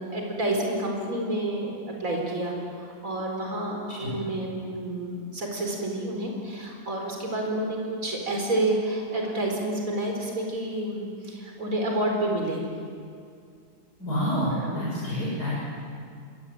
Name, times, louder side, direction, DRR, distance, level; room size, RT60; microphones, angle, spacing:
voice 1, 0.0-1.7 2.0-12.6 14.6-14.9, right 1 dB, 55° right, 0 dB, 5.0 m, -29 dB
voice 2, 14.0-15.6, equal, 80° left, -8 dB, 8.1 m, -28 dB
27.0 x 24.5 x 8.9 m, 2.3 s
omnidirectional pair, 1.7 m